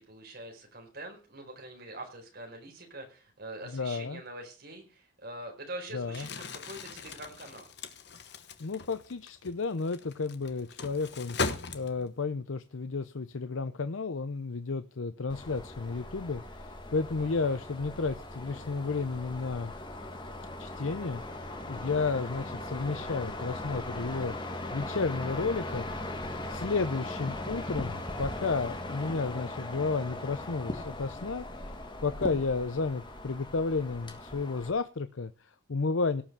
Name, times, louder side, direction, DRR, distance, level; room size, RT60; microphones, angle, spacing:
voice 1, 0.0-7.7 17.2-17.6, right 1 dB, 50° right, 2 dB, 4.7 m, -44 dB
voice 2, 3.7-4.2 5.9-6.3 8.6-11.4 11.7-19.7 20.6-25.9 26.5-31.7 32.0-36.2, left 4 dB, 75° left, 11 dB, 0.7 m, -32 dB
Crumpling crinkling, 6.0-12.2, left 4 dB, 55° left, 1.2 m, -39 dB
sound 1, 15.3-34.7, left 1 dB, 25° left, 1.6 m, -39 dB
17.5 x 5.9 x 6.8 m, 0.36 s
head